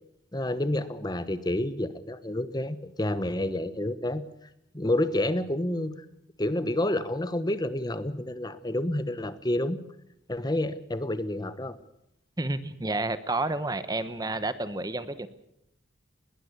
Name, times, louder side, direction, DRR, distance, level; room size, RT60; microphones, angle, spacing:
voice 1, 0.3-4.2 4.7-5.9 6.4-9.8 10.3-11.8, left 1 dB, 20° left, 13 dB, 1.1 m, -29 dB
voice 2, 12.4-15.3, right 2 dB, 20° right, 13 dB, 1.0 m, -30 dB
21.0 x 18.5 x 8.2 m, 0.78 s
head